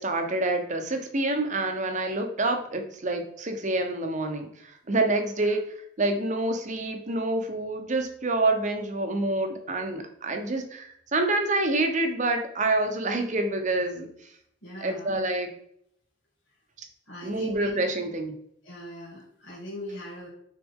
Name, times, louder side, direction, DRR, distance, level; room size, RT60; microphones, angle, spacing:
voice 1, 0.0-5.6 6.0-14.1 14.8-15.5 17.2-18.3, right 2 dB, 40° right, 5 dB, 0.9 m, -27 dB
voice 2, 14.6-15.2 17.1-17.7 18.6-20.3, equal, 75° left, -7 dB, 2.0 m, -40 dB
6.2 x 4.2 x 3.6 m, 0.71 s
head